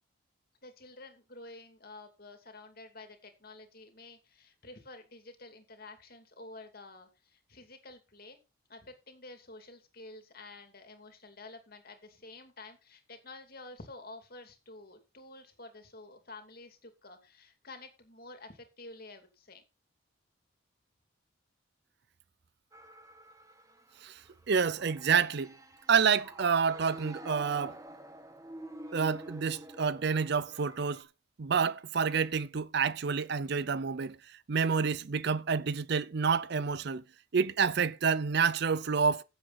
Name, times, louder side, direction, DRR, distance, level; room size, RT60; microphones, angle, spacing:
voice 1, 0.6-8.4 8.7-19.6, left 2 dB, 45° left, 2.7 m, -50 dB
sound 1, 22.7-31.0, right 1 dB, 15° right, 1.3 m, -48 dB
voice 2, 24.5-25.5 25.9-27.8 28.9-31.1 31.4-34.2 34.5-37.0 37.3-39.2, right 6 dB, 55° right, 0.5 m, -28 dB
16.0 x 7.7 x 4.2 m
head